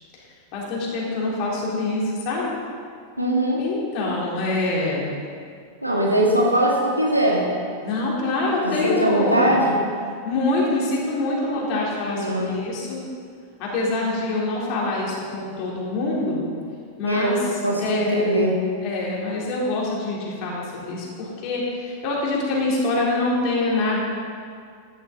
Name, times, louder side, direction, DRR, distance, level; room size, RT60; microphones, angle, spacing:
voice 1, 0.5-2.5 3.6-5.1 7.8-9.6 10.2-13.0 13.6-16.4 17.0-17.4 17.8-18.4 18.8-24.0, left 2 dB, 40° left, -4 dB, 3.5 m, -25 dB
voice 2, 3.2-3.6 5.8-7.5 8.6-9.8 12.2-12.6 17.0-18.6, right 1 dB, 90° right, -3 dB, 2.1 m, -21 dB
13.5 x 10.5 x 4.0 m, 2.2 s
figure-of-eight pair, 90°, 0 cm